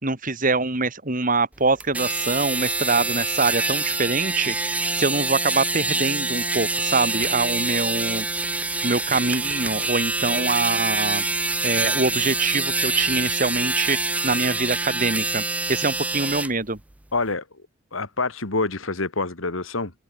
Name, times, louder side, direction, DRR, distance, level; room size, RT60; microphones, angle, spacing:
voice 1, 0.0-8.3 8.8-11.2 11.6-15.4 15.7-16.8, right 3 dB, 40° right, 3.0 m, -24 dB
sound 1, 1.8-16.5, right 3 dB, 5° right, 0.3 m, -25 dB
voice 2, 17.1-17.4 17.9-19.9, left 3 dB, 75° left, 2.2 m, -26 dB
head